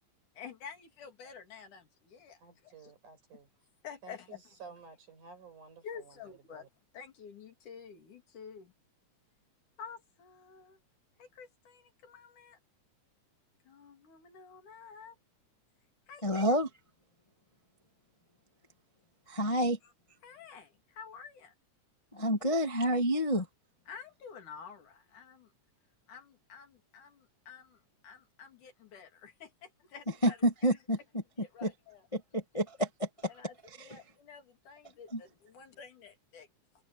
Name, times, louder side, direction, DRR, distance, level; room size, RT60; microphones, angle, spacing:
voice 1, 0.4-2.9 3.8-4.4 5.8-6.7 6.9-8.7 9.8-10.8 11.2-12.6 13.7-15.2 16.1-16.6 19.8-19.9 20.2-21.5 23.9-25.5 26.1-30.8 31.4-32.1 33.3-36.5, left 6 dB, 85° left, 4.4 m, -50 dB
voice 2, 2.4-3.5 4.0-6.2 6.5-6.7, right 5 dB, 90° right, 7.3 m, -53 dB
voice 3, 16.2-16.7 19.3-19.8 22.1-23.5 30.2-31.0 31.6-31.7 32.1-33.1 33.8-34.0 35.1-35.2, equal, 25° left, 0.7 m, -28 dB
omnidirectional pair, 3.5 m